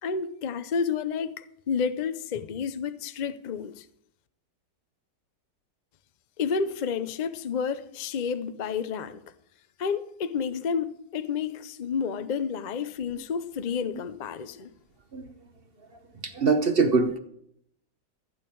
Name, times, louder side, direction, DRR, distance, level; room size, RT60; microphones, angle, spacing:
voice 1, 0.0-3.8 6.4-9.2 9.8-14.7, left 6 dB, 65° left, 0.4 m, -30 dB
voice 2, 15.9-17.2, right 4 dB, 40° right, 0.9 m, -24 dB
15.0 x 9.0 x 4.6 m
omnidirectional pair, 1.8 m